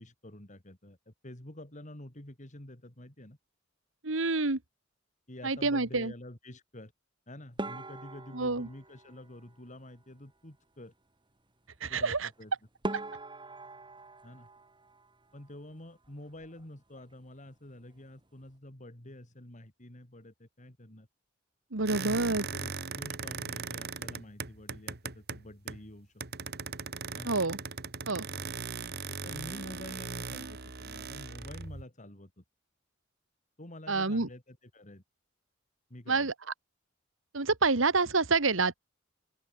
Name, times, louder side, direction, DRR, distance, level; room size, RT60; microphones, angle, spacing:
voice 1, 0.0-3.4 5.3-6.9 7.3-10.9 11.9-12.5 14.2-14.5 15.3-21.1 21.8-26.2 27.1-27.4 29.1-32.4 33.6-35.0 35.9-36.3, left 1 dB, 40° left, 3.4 m, -48 dB
voice 2, 4.0-4.6 5.4-6.1 8.3-8.7 11.8-12.3 21.7-22.4 27.3-27.6 28.1-28.3 33.9-34.3 36.1-36.3 37.3-38.7, right 3 dB, 75° right, 1.7 m, -27 dB
sound 1, 7.6-10.0 12.3-12.4 12.8-15.6 15.9-16.6 16.9-17.1 17.5-17.6 18.2-18.5, right 2 dB, 25° right, 4.9 m, -42 dB
sound 2, 21.9-25.9 26.2-31.8, right 5 dB, 55° right, 2.1 m, -39 dB
open air
head